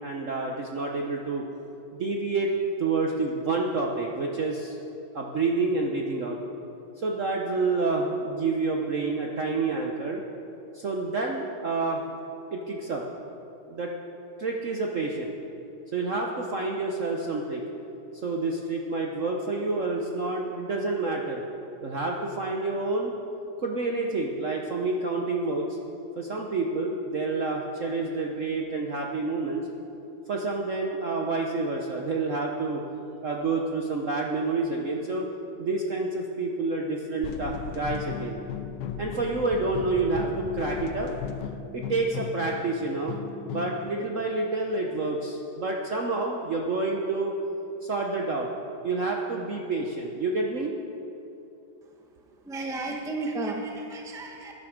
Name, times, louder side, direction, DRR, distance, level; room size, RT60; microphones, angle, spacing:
voice 1, 0.0-1.4 1.9-2.5 2.8-4.7 5.1-6.4 7.0-10.2 10.7-12.0 12.5-13.0 13.7-13.9 14.4-15.3 15.9-17.6 18.2-21.4 21.8-23.1 23.6-25.8 26.2-29.7 30.3-32.8 33.2-35.2 35.6-38.4 39.0-41.1 41.7-47.3 47.8-48.5 48.8-50.7, right 3 dB, 50° right, 0 dB, 1.0 m, -28 dB
sound 1, 37.2-43.9, left 8 dB, 90° left, 1.6 m, -36 dB
voice 2, 51.8-54.5, right 2 dB, ahead, 1 dB, 0.7 m, -34 dB
17.0 x 10.5 x 5.1 m, 2.8 s
omnidirectional pair, 2.3 m